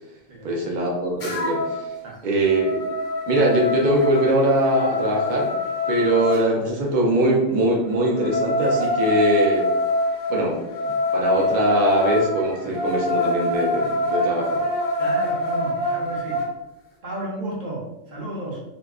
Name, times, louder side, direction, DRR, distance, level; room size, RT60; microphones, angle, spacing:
voice 1, 0.4-2.0 2.2-2.8 3.3-5.5 5.9-9.7 10.3-10.6 10.9-14.6, right 1 dB, 80° right, -2 dB, 0.4 m, -22 dB
sound 1, 1.2-1.8 2.2-6.4 7.9-16.5, left 1 dB, 50° left, 0.9 m, -25 dB
voice 2, 15.0-16.4 17.0-18.6, right 1 dB, 45° right, -4 dB, 0.7 m, -33 dB
2.6 x 2.3 x 2.3 m, 0.96 s
omnidirectional pair, 1.4 m